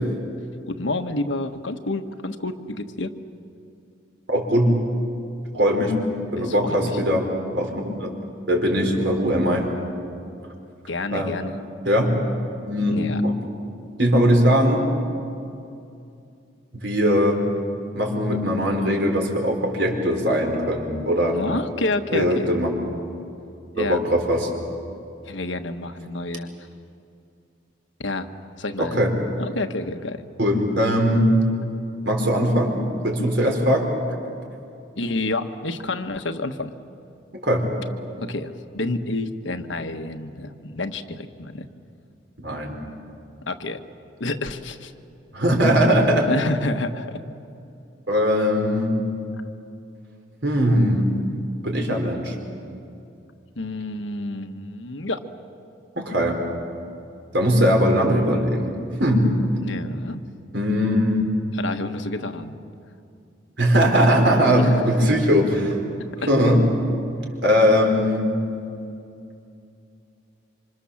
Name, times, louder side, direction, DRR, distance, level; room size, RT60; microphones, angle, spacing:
voice 1, 0.7-3.1 6.4-7.0 10.9-11.6 12.9-13.2 21.3-22.5 23.7-24.0 25.2-26.5 28.0-28.3 28.6-29.0 29.4-30.2 35.0-36.7 38.2-41.7 43.5-43.8 44.2-44.9 46.3-47.2 53.6-55.2 59.6-60.2 61.5-62.5 64.5-64.8 66.2-66.3, left 2 dB, 75° left, 7 dB, 1.3 m, -29 dB
voice 2, 4.3-4.7 5.5-5.9 6.3-7.3 7.5-8.1 8.5-9.7 11.1-11.3 11.8-12.2 12.7-13.3 14.0-14.9 16.8-17.4 17.9-21.4 22.1-22.7 23.8-24.5 28.8-29.1 30.4-31.3 32.0-32.8 33.0-33.9 37.4-37.7 42.4-42.7 45.3-46.3 48.1-48.9 50.4-51.1 51.6-52.3 56.0-56.4 57.3-59.2 60.5-61.3 63.6-65.8 66.3-66.6 67.4-68.3, equal, 60° right, 1 dB, 4.7 m, -20 dB
27.0 x 26.0 x 7.3 m, 2.5 s
head